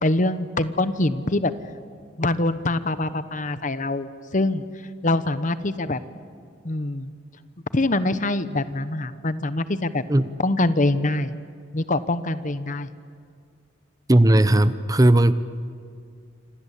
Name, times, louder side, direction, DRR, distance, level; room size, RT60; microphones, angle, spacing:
voice 1, 0.0-1.5 2.2-4.6 5.0-6.0 6.6-7.1 7.7-10.0 10.4-11.3 11.7-12.9, left 2 dB, 40° left, 13 dB, 1.1 m, -24 dB
voice 2, 14.1-15.3, right 1 dB, 20° right, 13 dB, 0.7 m, -16 dB
27.5 x 25.5 x 8.4 m, 2.2 s
head